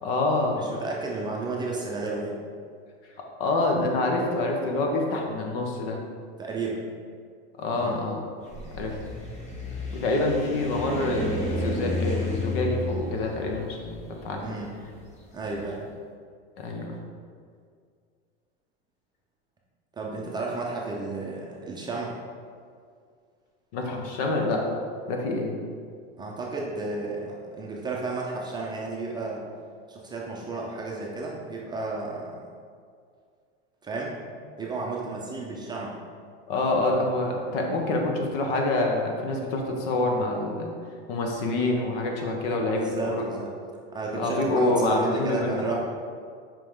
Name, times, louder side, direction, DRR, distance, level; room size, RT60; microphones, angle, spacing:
voice 1, 0.0-0.7 3.2-6.0 7.6-8.2 8.7-9.0 9.9-14.4 16.6-17.0 23.7-24.6 25.1-25.5 36.5-40.7 41.1-43.2 44.2-45.7, left 2 dB, 65° left, 1 dB, 1.2 m, -26 dB
voice 2, 0.6-2.4 6.4-6.8 7.7-8.0 14.4-14.7 15.3-15.8 19.9-22.2 26.2-29.4 29.9-32.4 33.8-34.2 34.6-36.0 42.7-43.5 43.9-45.8, right 3 dB, 15° right, -3 dB, 0.6 m, -32 dB
sound 1, 8.4-15.6, left 1 dB, 20° left, 0.9 m, -32 dB
5.3 x 5.2 x 3.8 m, 2.1 s
supercardioid pair, 145°, 31 cm